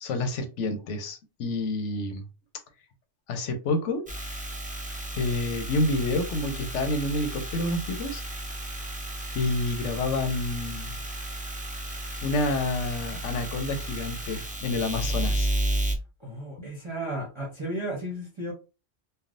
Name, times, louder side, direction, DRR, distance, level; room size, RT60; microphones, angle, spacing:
voice 1, 0.0-2.2 3.3-4.1 5.1-8.2 9.3-11.0 12.2-15.5 16.6-16.7, left 2 dB, 90° left, 1.0 m, -28 dB
sound 1, 4.1-15.9, right 1 dB, 10° right, 0.4 m, -33 dB
voice 2, 16.2-18.5, right 1 dB, 30° right, 0.8 m, -34 dB
3.4 x 2.2 x 2.5 m
omnidirectional pair, 1.2 m